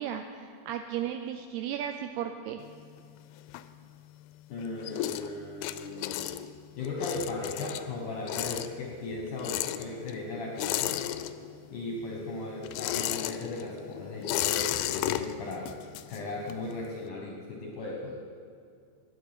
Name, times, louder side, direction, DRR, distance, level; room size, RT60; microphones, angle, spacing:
voice 1, 0.0-2.6, right 9 dB, 85° right, 6 dB, 2.3 m, -35 dB
sound 1, 2.6-4.2 4.5-11.8 12.0-16.7, left 14 dB, 85° left, 2.8 m, -34 dB
voice 2, 4.5-6.2 6.8-11.1 11.7-15.7 16.1-18.2, left 2 dB, 70° left, -1 dB, 1.9 m, -37 dB
9.0 x 8.9 x 9.5 m, 2.3 s
omnidirectional pair, 5.1 m